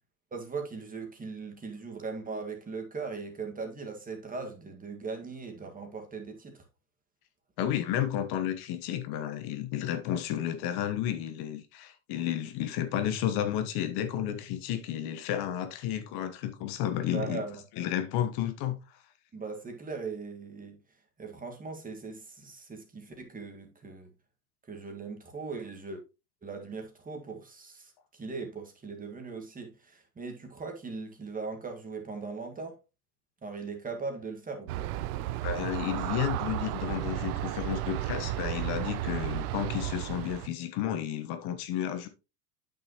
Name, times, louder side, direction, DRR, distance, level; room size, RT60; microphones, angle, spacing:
voice 1, 0.3-6.6 17.0-17.6 19.3-20.8 21.2-24.1 24.7-26.0 26.4-32.8 33.4-34.9, right 4 dB, 15° right, 1.9 m, -39 dB
voice 2, 7.6-17.4 17.8-18.8 35.4-42.1, left 10 dB, 55° left, 1.2 m, -32 dB
Aircraft, 34.7-40.5, right 14 dB, 70° right, 0.7 m, -33 dB
8.9 x 6.1 x 3.0 m
supercardioid pair, 115°, 47 cm